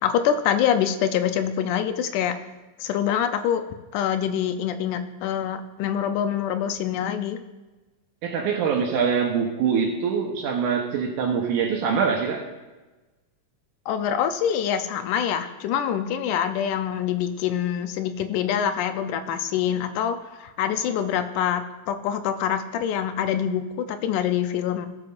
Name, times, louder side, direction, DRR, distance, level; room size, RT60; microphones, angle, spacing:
voice 1, 0.0-2.4 2.8-3.6 3.9-7.4 13.9-24.9, left 9 dB, 85° left, 8 dB, 2.2 m, -25 dB
voice 2, 8.2-12.5, right 6 dB, 85° right, 1 dB, 2.5 m, -24 dB
18.0 x 7.7 x 2.6 m, 1.2 s
omnidirectional pair, 3.5 m